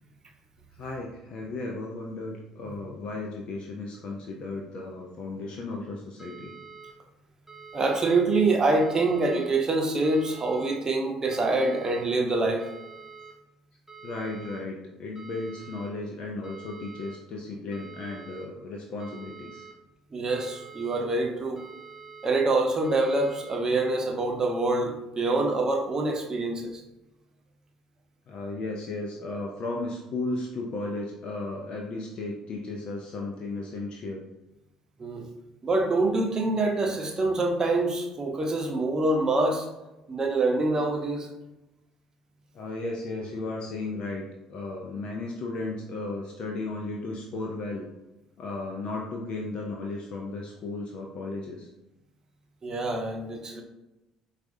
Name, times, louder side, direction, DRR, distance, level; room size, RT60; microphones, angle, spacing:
voice 1, 0.8-6.5 14.0-19.6 28.3-34.3 42.5-47.9 48.4-51.7, left 2 dB, 55° left, 0 dB, 0.5 m, -35 dB
sound 1, 6.2-6.9 7.5-8.2 8.7-9.5 10.0-10.8 11.3-12.0 12.6-13.3 13.9-14.6 15.1-15.9 16.4-17.2 17.7-18.4 19.0-19.7 20.3-21.0 21.6-22.3 22.8-23.6, right 5 dB, 5° right, 1.5 m, -46 dB
voice 2, 7.7-12.7 20.1-21.6 22.2-26.8 35.0-35.3 35.6-39.7 40.1-41.3 52.6-53.6, right 2 dB, 30° right, 2 dB, 0.8 m, -25 dB
4.5 x 2.4 x 2.6 m, 0.96 s
hypercardioid pair, 55°, 2 cm